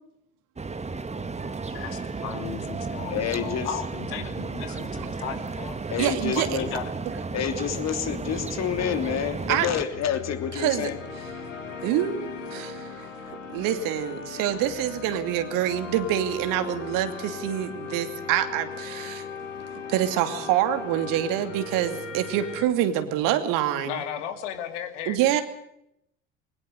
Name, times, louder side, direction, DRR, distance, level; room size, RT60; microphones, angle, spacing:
sound 1, 0.6-9.8, right 4 dB, 15° right, 1.8 m, -33 dB
voice 1, 1.7-5.8 6.3-6.9 23.8-25.2, left 9 dB, 70° left, 8 dB, 2.7 m, -35 dB
voice 2, 3.1-3.7 5.9-6.7 7.3-11.0, left 9 dB, 45° left, 8 dB, 3.1 m, -28 dB
voice 3, 6.0-6.6 9.5-9.7 10.5-10.9 11.8-13.1 13.5-19.3 19.7-24.0 25.1-25.4, right 11 dB, 60° right, 9 dB, 2.7 m, -26 dB
sound 2, 9.9-22.7, left 5 dB, 85° left, 2.9 m, -38 dB
22.5 x 19.5 x 6.6 m, 0.78 s
figure-of-eight pair, 60°, 38 cm